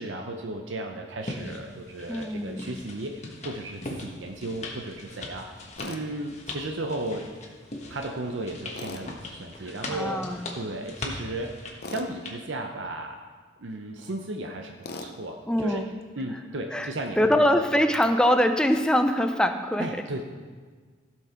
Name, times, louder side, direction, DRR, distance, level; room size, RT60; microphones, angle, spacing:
voice 1, 0.0-7.3 7.9-13.2 13.6-14.7 15.0-15.8 16.1-17.5 19.8-20.2, right 1 dB, 80° right, 3 dB, 0.7 m, -35 dB
sound 1, 1.2-12.4, left 2 dB, 35° left, 1.4 m, -40 dB
voice 2, 2.1-2.7 9.9-10.6 15.5-15.9 16.7-16.9 17.2-19.9, left 1 dB, 5° left, 7 dB, 0.5 m, -23 dB
Tools, 5.8-6.0 8.8-9.1 11.8-12.1 14.8-15.1, left 3 dB, 55° left, 0.8 m, -37 dB
15.5 x 6.2 x 4.4 m, 1.5 s
head